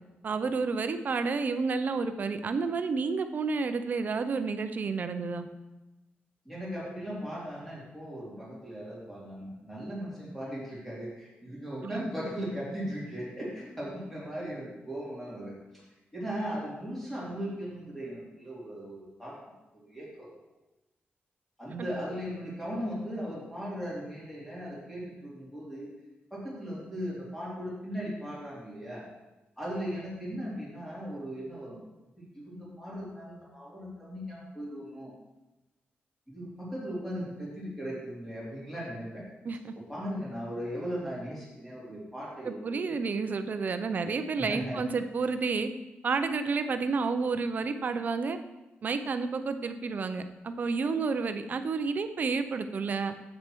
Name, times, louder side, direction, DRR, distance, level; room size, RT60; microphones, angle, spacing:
voice 1, 0.2-5.5 11.8-12.1 21.8-21.9 39.4-39.7 42.4-45.7 46.0-48.4 48.8-53.1, right 4 dB, 45° right, 9 dB, 0.6 m, -30 dB
voice 2, 6.4-15.5 16.1-19.3 19.7-20.3 21.6-25.9 26.3-29.0 29.6-31.8 32.3-35.1 36.3-39.2 39.9-42.9 44.5-44.8, equal, 5° left, -7 dB, 2.9 m, -38 dB
8.1 x 6.4 x 4.6 m, 1.0 s
wide cardioid pair, 170°, 4 cm